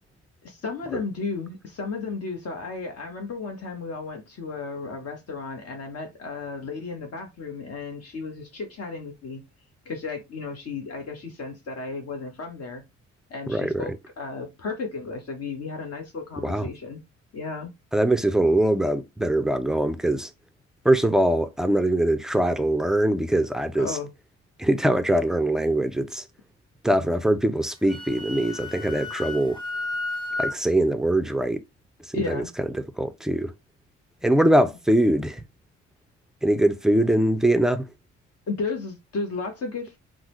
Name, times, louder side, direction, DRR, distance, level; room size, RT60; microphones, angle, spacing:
voice 1, 0.4-9.4 9.9-12.8 13.3-17.0 17.3-17.7 23.8-24.1 32.1-32.5 38.5-40.0, left 4 dB, 55° left, 1.0 m, -34 dB
voice 2, 13.5-13.9 16.4-16.7 17.9-20.3 20.8-24.0 24.6-26.3 26.8-29.6 30.4-31.6 32.1-33.5 34.2-35.4 36.4-37.9, right 1 dB, ahead, 0.3 m, -22 dB
Wind instrument woodwind instrument, 27.6-30.6, left 2 dB, 15° left, 1.1 m, -32 dB
3.7 x 2.1 x 3.0 m
cardioid pair, 90°, 30 cm